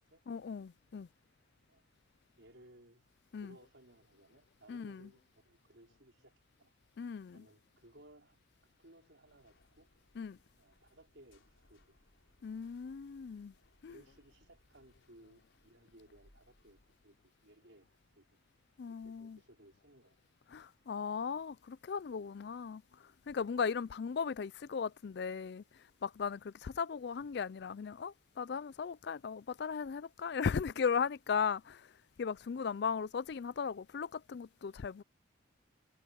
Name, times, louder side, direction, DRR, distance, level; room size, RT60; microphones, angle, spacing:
voice 1, 0.3-1.1 3.3-3.5 4.7-5.1 7.0-7.4 10.2-10.4 12.4-13.5 13.8-13.9 18.8-19.4 20.5-25.6 26.0-31.9 32.2-35.0, left 6 dB, 55° left, 0.4 m, -37 dB
voice 2, 2.4-3.0 3.4-6.3 6.6-6.7 7.3-8.4 8.8-9.9 10.6-12.0 13.9-17.9 18.1-18.3 18.9-20.1, right 1 dB, 65° right, 5.0 m, -61 dB
sound 1, 9.3-17.1, left 1 dB, 75° left, 4.3 m, -70 dB
head